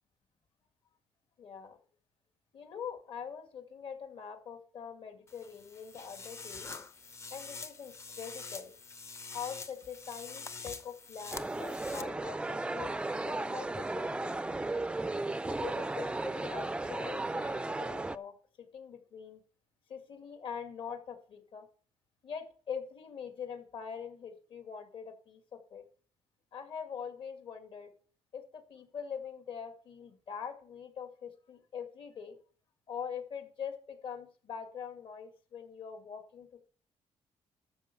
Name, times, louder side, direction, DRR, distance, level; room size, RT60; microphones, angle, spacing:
voice 1, 1.4-1.8 2.5-6.7 7.3-8.7 9.3-14.6 15.5-19.4 19.9-21.7 22.2-25.8 26.5-27.9 28.3-32.4 32.9-36.6, left 7 dB, 55° left, 6 dB, 2.3 m, -43 dB
sound 1, 5.3-12.0, left 4 dB, 25° left, 0.7 m, -46 dB
sound 2, 11.3-18.2, right 2 dB, 10° right, 0.4 m, -35 dB
13.0 x 5.4 x 7.0 m, 0.42 s
cardioid pair, 140°, 10 cm